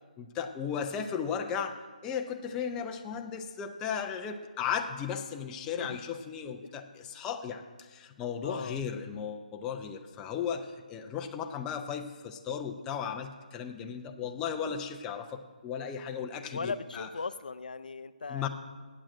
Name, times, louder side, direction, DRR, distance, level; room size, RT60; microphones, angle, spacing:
voice 1, 0.2-17.1 18.3-18.5, left 7 dB, 15° left, 4 dB, 0.6 m, -36 dB
voice 2, 8.4-8.8 16.5-18.5, left 4 dB, 80° left, 12 dB, 0.5 m, -38 dB
8.8 x 8.8 x 7.6 m, 1.4 s
hypercardioid pair, 155°, 5 cm